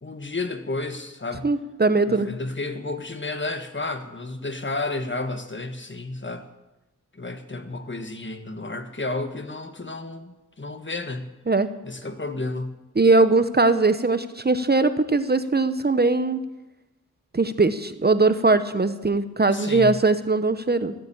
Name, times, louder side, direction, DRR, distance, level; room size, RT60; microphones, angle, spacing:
voice 1, 0.0-1.5 2.0-6.4 7.1-11.3 11.8-12.8 19.5-20.0, left 2 dB, 40° left, 8 dB, 1.4 m, -32 dB
voice 2, 1.4-2.3 11.5-11.7 13.0-16.4 17.3-20.9, right 3 dB, 35° right, 12 dB, 0.8 m, -20 dB
15.0 x 8.8 x 8.7 m, 1.0 s
wide cardioid pair, 55°, 30 cm